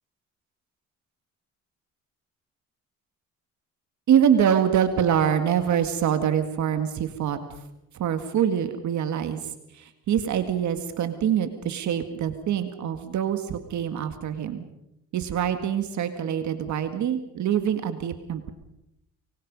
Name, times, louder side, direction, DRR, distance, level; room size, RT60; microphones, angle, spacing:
voice 1, 4.1-7.4 7.9-9.4 9.8-14.6 15.1-18.5, right 9 dB, 70° right, 9 dB, 2.0 m, -25 dB
24.5 x 24.0 x 5.4 m, 0.86 s
cardioid pair, 90°, 30 cm